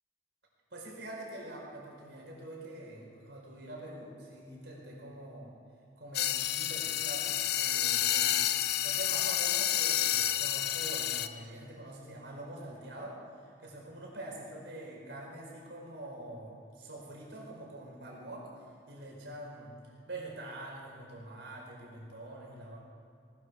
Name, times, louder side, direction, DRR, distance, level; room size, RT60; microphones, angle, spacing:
voice 1, 0.7-5.6 6.0-8.4 8.8-22.8, right 1 dB, 70° right, -2 dB, 4.9 m, -45 dB
sound 1, 6.1-11.3, left 11 dB, 55° left, 0.6 m, -30 dB
19.5 x 13.0 x 4.8 m, 2.6 s
head